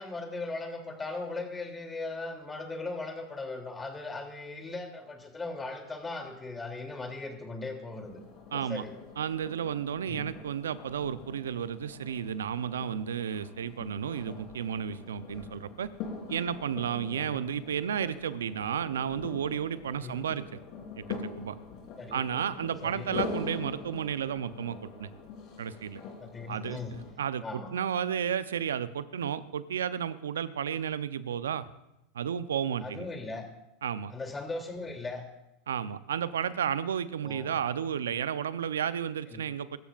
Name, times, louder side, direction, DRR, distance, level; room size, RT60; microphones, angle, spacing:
voice 1, 0.0-8.2 8.7-8.9 10.1-10.3 17.2-17.5 20.0-20.2 22.0-22.2 22.8-23.1 26.2-26.9 27.4-27.7 32.8-33.5 34.1-35.2 37.2-37.6 39.3-39.4, left 3 dB, 20° left, 3 dB, 3.0 m, -38 dB
sound 1, 7.9-27.1, left 5 dB, 55° left, 3.8 m, -43 dB
voice 2, 8.5-8.8 9.2-15.9 16.3-20.5 21.0-21.6 22.1-25.1 25.6-26.0 26.5-31.7 32.1-33.1 33.8-34.1 35.7-39.8, right 8 dB, 90° right, 14 dB, 0.7 m, -32 dB
24.0 x 13.5 x 2.5 m, 0.89 s
hypercardioid pair, 95°, 0 cm